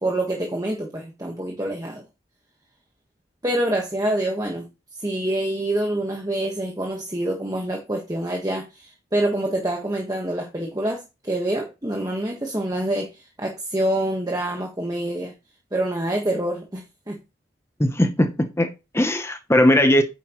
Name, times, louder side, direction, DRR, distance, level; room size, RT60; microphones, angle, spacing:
voice 1, 0.0-2.0 3.4-4.7 4.9-15.3 15.7-16.8 17.1-17.2, right 1 dB, 20° right, 1 dB, 1.3 m, -26 dB
voice 2, 17.8-20.0, left 1 dB, 15° left, 7 dB, 0.8 m, -19 dB
9.4 x 7.2 x 3.0 m, 0.26 s
head